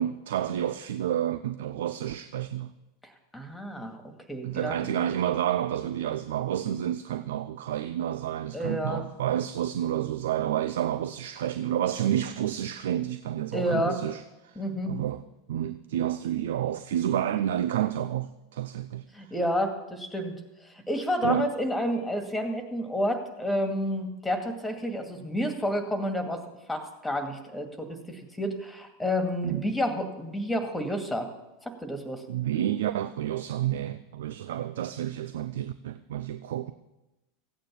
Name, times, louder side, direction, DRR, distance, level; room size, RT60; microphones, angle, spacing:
voice 1, 0.0-2.7 4.4-15.2 15.5-19.3 21.2-21.5 29.4-29.7 32.3-36.7, right 11 dB, 60° right, 0.5 m, -30 dB
voice 2, 3.3-4.0 4.3-4.9 8.5-9.0 13.5-14.0 14.6-14.9 19.1-20.3 20.9-26.4 26.7-31.3 31.8-32.2, equal, 5° left, 2.2 m, -30 dB
16.0 x 9.0 x 7.2 m
figure-of-eight pair, 85°, 0 cm